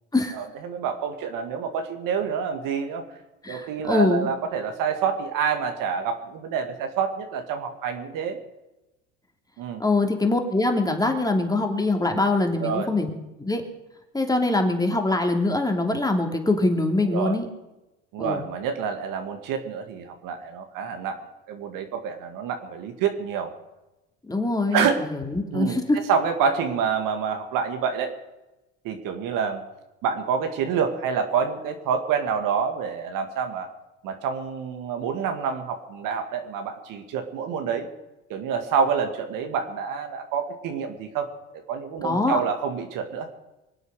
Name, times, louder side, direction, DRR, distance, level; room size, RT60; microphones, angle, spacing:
voice 1, 0.3-3.0 3.5-8.4 9.6-9.8 12.6-12.9 17.0-17.4 18.1-21.2 21.5-23.5 24.7-25.1 25.5-28.1 28.8-29.6 30.0-33.7 34.0-37.9 38.3-41.3 41.7-43.3, right 6 dB, 65° right, 5 dB, 2.3 m, -27 dB
voice 2, 3.4-4.3 9.8-13.1 13.5-13.6 14.1-17.5 18.2-18.4 24.3-26.0 42.0-42.4, left 2 dB, 10° left, 4 dB, 2.9 m, -23 dB
24.5 x 8.2 x 6.5 m, 0.99 s
supercardioid pair, 80°, 35 cm